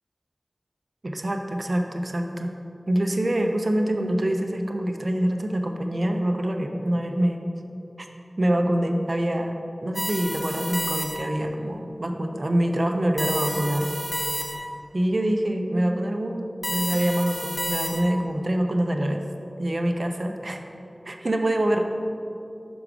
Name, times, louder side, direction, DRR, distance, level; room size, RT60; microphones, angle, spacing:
voice 1, 1.0-2.5 2.9-7.4 8.4-9.5 9.8-14.0 14.9-19.2 19.6-20.6 21.1-21.8, right 1 dB, 60° right, 4 dB, 0.5 m, -25 dB
sound 1, 10.0-11.5 13.2-14.8 16.6-18.3, equal, 10° left, 0.8 m, -30 dB
6.0 x 4.8 x 5.1 m, 2.7 s
wide cardioid pair, 45°, 0 cm